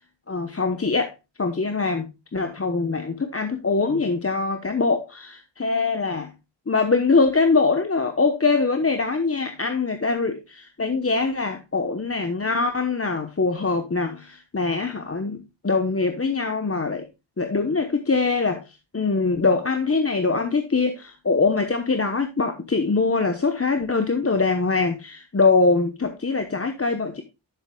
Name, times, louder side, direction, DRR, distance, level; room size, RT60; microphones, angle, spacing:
voice 1, 0.3-1.1 1.4-2.1 2.3-6.3 6.7-17.0 17.4-27.2, left 4 dB, 30° left, 1.0 m, -23 dB
10.5 x 7.2 x 2.3 m
wide cardioid pair, 55°, 48 cm